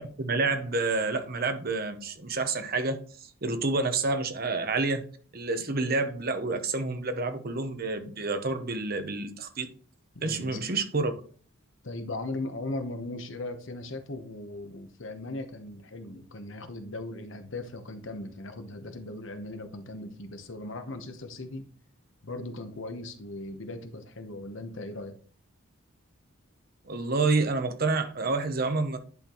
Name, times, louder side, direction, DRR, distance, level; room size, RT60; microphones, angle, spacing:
voice 1, 0.2-3.0 3.4-5.0 5.3-9.7 10.2-11.1 26.9-29.0, right 3 dB, 45° right, 0.8 m, -28 dB
voice 2, 10.1-10.7 11.8-21.7 22.2-25.2, left 2 dB, 60° left, 1.0 m, -38 dB
10.5 x 4.3 x 3.0 m
head